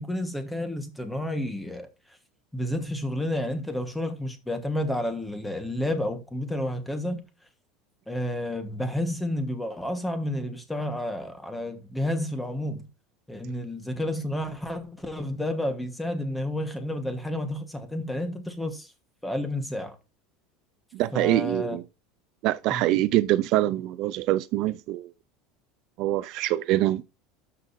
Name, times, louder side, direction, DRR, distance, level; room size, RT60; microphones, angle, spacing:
voice 1, 0.0-1.9 2.5-7.2 8.1-12.9 13.3-18.9 19.2-19.9 21.1-21.8 22.7-22.9, left 1 dB, 5° left, 1.4 m, -30 dB
voice 2, 20.9-21.8 22.4-25.1 26.0-27.0, right 15 dB, 50° right, 0.4 m, -24 dB
12.5 x 5.2 x 2.7 m
supercardioid pair, 150°, 0 cm